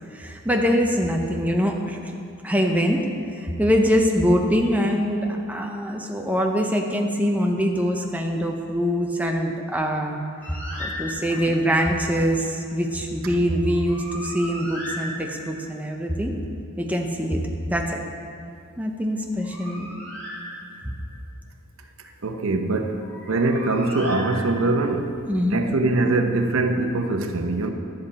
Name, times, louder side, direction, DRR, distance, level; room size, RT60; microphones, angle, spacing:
voice 1, 0.1-2.1 2.4-3.0 3.3-10.2 10.5-16.3 16.8-18.0 18.8-19.9 20.8-21.0 25.3-25.6, equal, 5° right, 1 dB, 0.7 m, -23 dB
Bird, 10.4-11.6 13.6-15.7 19.2-21.0 23.0-24.9, left 1 dB, 10° left, 2.1 m, -37 dB
voice 2, 22.2-23.0 23.3-25.1 25.5-27.7, right 2 dB, 75° right, 5 dB, 0.7 m, -22 dB
11.5 x 7.6 x 4.2 m, 2.5 s
head